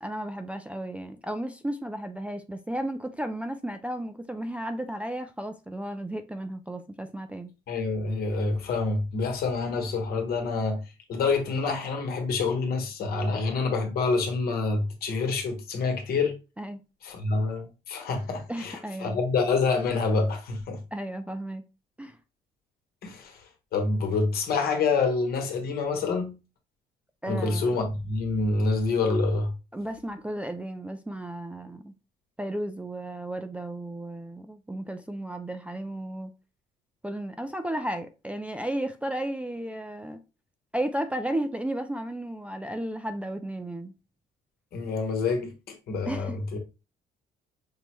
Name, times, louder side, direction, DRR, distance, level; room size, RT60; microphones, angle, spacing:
voice 1, 0.0-7.5 16.6-16.8 18.5-19.2 20.9-21.6 22.0-22.2 27.2-27.7 29.7-31.9 32.4-36.3 37.0-40.2 40.7-43.9 46.0-46.4, right 1 dB, 10° right, 0.3 m, -34 dB
voice 2, 7.7-10.8 11.1-16.3 17.0-20.8 23.0-23.4 23.7-26.4 27.2-29.5 44.7-46.6, left 3 dB, 65° left, 1.1 m, -27 dB
5.2 x 2.1 x 3.1 m
cardioid pair, 110°, 17 cm